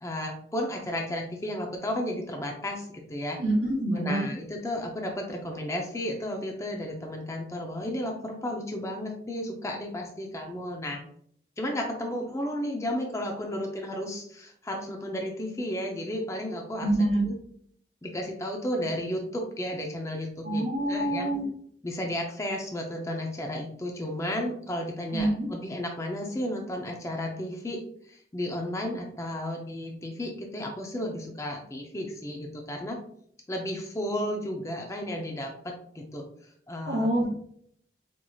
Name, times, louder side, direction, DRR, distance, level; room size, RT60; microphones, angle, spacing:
voice 1, 0.0-3.4 4.0-11.0 11.6-16.9 17.3-17.4 18.0-21.3 21.8-33.0 33.5-36.2 36.7-37.3, left 1 dB, 15° left, 1 dB, 0.5 m, -33 dB
voice 2, 3.4-4.3 16.8-17.3 20.4-21.5 25.1-25.5 36.8-37.3, right 1 dB, 50° right, -7 dB, 0.8 m, -26 dB
4.4 x 2.8 x 2.3 m, 0.63 s
head